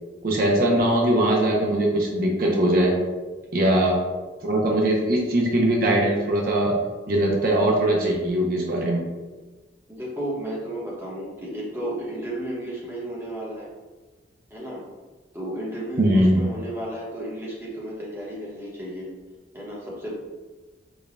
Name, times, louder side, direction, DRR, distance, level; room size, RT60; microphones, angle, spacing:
voice 1, 0.2-2.9 3.5-4.0 4.4-6.8 7.1-9.0 16.0-16.4, right 1 dB, 50° right, -1 dB, 0.5 m, -21 dB
voice 2, 9.9-13.7 14.5-14.8 15.3-19.1 19.5-20.1, right 1 dB, 10° right, -5 dB, 0.8 m, -33 dB
5.0 x 2.1 x 2.5 m, 1.3 s
head